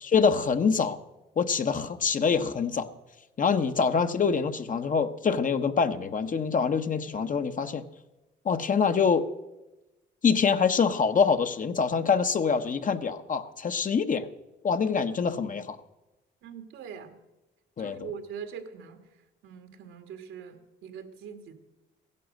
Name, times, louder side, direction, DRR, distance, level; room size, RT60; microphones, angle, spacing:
voice 1, 0.0-1.0 1.4-2.9 3.4-7.9 8.4-9.3 10.2-14.3 14.6-15.8 17.8-18.1, left 6 dB, 40° left, 9 dB, 1.0 m, -25 dB
voice 2, 16.4-17.2 17.8-19.1 19.4-21.5, right 7 dB, 80° right, 7 dB, 1.8 m, -42 dB
15.5 x 11.0 x 6.5 m, 1.0 s
cardioid pair, 90°, 20 cm